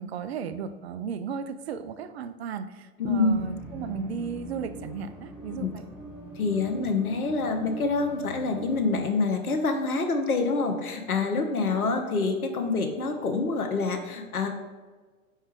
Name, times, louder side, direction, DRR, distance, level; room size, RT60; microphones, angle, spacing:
voice 1, 0.0-5.8, right 6 dB, 50° right, 11 dB, 0.4 m, -35 dB
voice 2, 3.0-3.4 5.6-5.7 6.4-14.5, left 3 dB, 80° left, 5 dB, 1.0 m, -26 dB
sound 1, 3.3-9.1, equal, 5° right, 1.4 m, -42 dB
4.8 x 4.5 x 4.5 m, 1.4 s
figure-of-eight pair, 105°, 43 cm